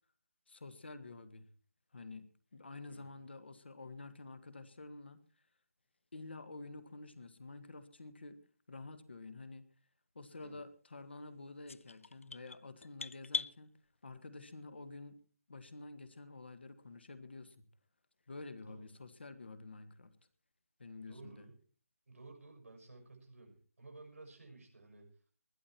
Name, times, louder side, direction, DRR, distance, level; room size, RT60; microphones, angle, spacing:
voice 1, 0.5-1.5 1.9-5.2 6.1-8.4 8.7-9.7 10.1-13.7 14.0-15.2 15.5-17.6 18.3-20.1 20.8-21.5, left 3 dB, 45° left, 13 dB, 1.6 m, -49 dB
voice 2, 2.9-3.2 10.4-10.6 18.7-18.9 21.1-21.6 22.1-25.1, right 3 dB, 60° right, 3 dB, 6.4 m, -55 dB
sound 1, 11.7-13.5, left 4 dB, 65° left, 0.6 m, -40 dB
21.0 x 11.0 x 4.4 m, 0.41 s
hypercardioid pair, 180°, 8 cm